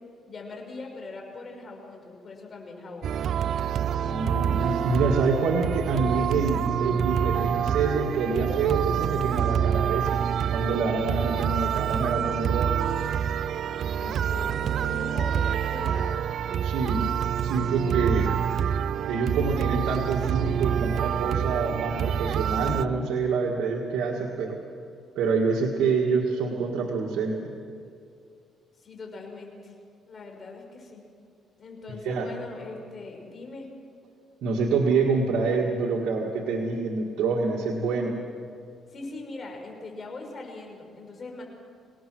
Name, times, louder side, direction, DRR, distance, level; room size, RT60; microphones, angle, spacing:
voice 1, 0.3-3.2 14.0-16.2 28.8-29.7 30.1-31.0 31.6-33.7 38.9-41.4, left 3 dB, 40° left, 1 dB, 5.7 m, -41 dB
sound 1, 3.0-22.9, right 8 dB, 65° right, 0.5 m, -27 dB
voice 2, 4.0-10.1 10.5-12.8 16.6-17.1 17.4-18.3 19.1-24.6 25.2-27.5 32.0-32.3 34.4-38.2, right 4 dB, 80° right, -2 dB, 2.0 m, -26 dB
25.5 x 18.5 x 6.3 m, 2.4 s
cardioid pair, 90°, 0 cm